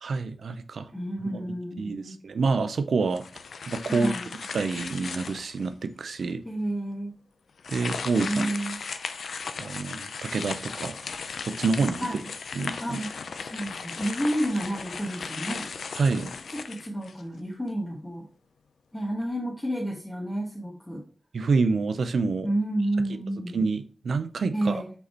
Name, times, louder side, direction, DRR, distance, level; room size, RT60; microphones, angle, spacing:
voice 1, 0.0-0.9 1.3-1.4 1.8-3.2 3.7-4.1 4.5-6.4 7.7-8.5 9.6-11.0 11.4-12.0 12.5-13.0 15.9-16.3 21.3-22.5 23.1-23.2 23.5-24.8, right 4 dB, 85° right, 10 dB, 0.5 m, -27 dB
voice 2, 0.9-2.2 3.9-4.3 6.4-7.1 8.2-8.8 11.8-12.3 12.8-13.1 13.4-15.7 16.5-18.3 18.9-21.0 22.4-23.6 24.5-24.9, right 1 dB, 15° left, -4 dB, 1.4 m, -30 dB
sound 1, 3.1-5.7 6.2-6.3 7.6-17.4, left 5 dB, 90° left, 0.5 m, -36 dB
5.6 x 4.2 x 4.4 m, 0.39 s
wide cardioid pair, 105°, 0 cm